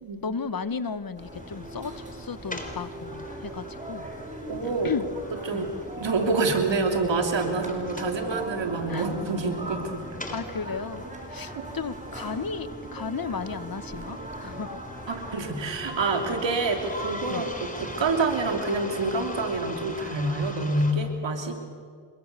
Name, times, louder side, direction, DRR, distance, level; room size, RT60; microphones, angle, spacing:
voice 1, 0.2-4.1 4.8-5.1 5.5-5.6 8.9-9.0 10.3-14.8 17.3-17.5, left 5 dB, 55° left, 13 dB, 1.3 m, -34 dB
sound 1, 1.1-20.1, right 1 dB, 15° right, 6.0 m, -40 dB
sound 2, 1.3-20.9, left 1 dB, 20° left, 3.8 m, -43 dB
voice 2, 4.5-4.9 5.4-10.0 11.5-11.7 15.1-17.5 17.7-21.5, right 3 dB, 85° right, 4 dB, 3.0 m, -27 dB
26.0 x 22.5 x 6.9 m, 2.1 s
cardioid pair, 55°, 43 cm